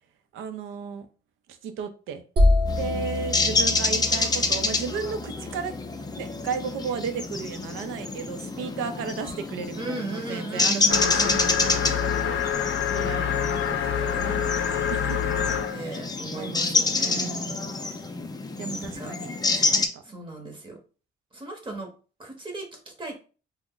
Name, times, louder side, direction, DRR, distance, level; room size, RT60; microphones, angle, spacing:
voice 1, 0.3-1.1 1.5-2.2 2.8-5.7 6.2-13.6 13.9-14.6 14.9-15.7 16.3-17.7 18.6-19.6 19.9-20.0, right 6 dB, 85° right, 9 dB, 0.5 m, -35 dB
sound 1, 2.4-6.1, left 1 dB, 55° right, 0.9 m, -26 dB
sound 2, 2.7-19.9, left 3 dB, 20° left, 0.4 m, -28 dB
voice 2, 3.2-3.6 9.8-12.2 15.7-17.5 18.6-19.1 20.0-20.8 21.3-21.9 22.2-23.2, right 3 dB, 25° right, 3 dB, 0.8 m, -37 dB
sound 3, 10.9-15.8, left 9 dB, 70° left, 0.5 m, -26 dB
2.4 x 2.1 x 3.6 m, 0.36 s
cardioid pair, 90°, 20 cm